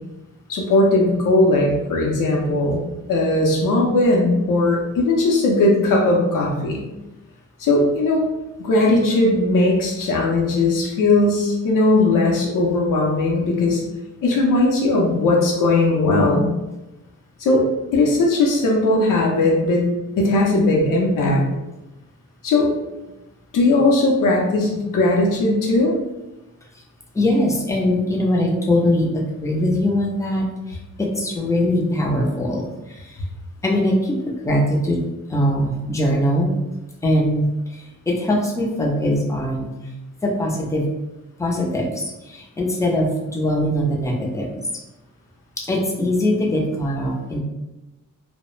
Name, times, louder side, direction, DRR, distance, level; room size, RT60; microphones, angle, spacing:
voice 1, 0.5-2.8 3.1-6.8 7.6-8.3 8.6-13.8 14.2-16.5 17.4-17.6 17.9-19.8 20.2-21.4 22.4-22.7 23.5-25.9, left 2 dB, 75° left, -1 dB, 0.6 m, -18 dB
voice 2, 27.1-33.2 33.6-36.5 37.0-39.7 40.2-40.9 41.4-44.6 45.6-47.4, left 1 dB, 10° left, -1 dB, 0.4 m, -22 dB
2.3 x 2.0 x 3.0 m, 1.0 s
wide cardioid pair, 140°, 32 cm